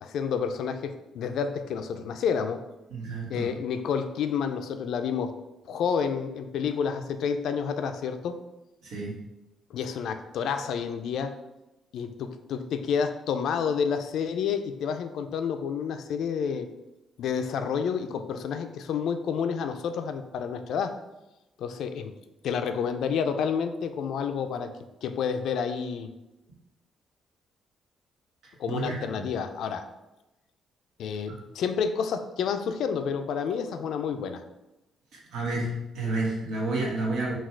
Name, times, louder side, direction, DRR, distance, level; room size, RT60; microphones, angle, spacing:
voice 1, 0.0-2.6 3.3-5.3 5.7-8.4 9.7-11.4 11.9-16.7 17.2-20.9 21.6-22.1 22.4-24.7 25.0-26.1 28.6-29.9 31.0-34.4, left 6 dB, 75° left, 8 dB, 0.4 m, -29 dB
voice 2, 2.9-3.5 8.8-9.2 28.7-29.3 31.3-31.4 35.1-37.3, right 2 dB, 85° right, -3 dB, 1.2 m, -30 dB
4.1 x 2.3 x 4.4 m, 1.0 s
cardioid pair, 90°, 0 cm